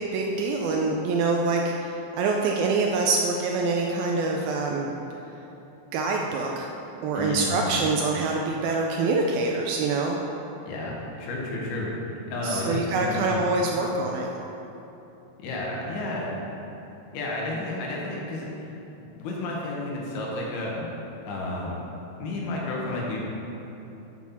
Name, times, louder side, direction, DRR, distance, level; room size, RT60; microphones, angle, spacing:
voice 1, 0.0-4.9 5.9-6.7 7.0-10.2 12.4-14.3, right 3 dB, 85° right, 0 dB, 2.1 m, -25 dB
voice 2, 7.1-7.8 10.6-11.9 12.3-13.5 15.4-16.4 17.1-18.5 19.0-20.9 21.3-21.8 22.2-23.2, left 2 dB, 70° left, -3 dB, 3.1 m, -31 dB
7.2 x 6.2 x 5.6 m, 3.0 s
omnidirectional pair, 4.9 m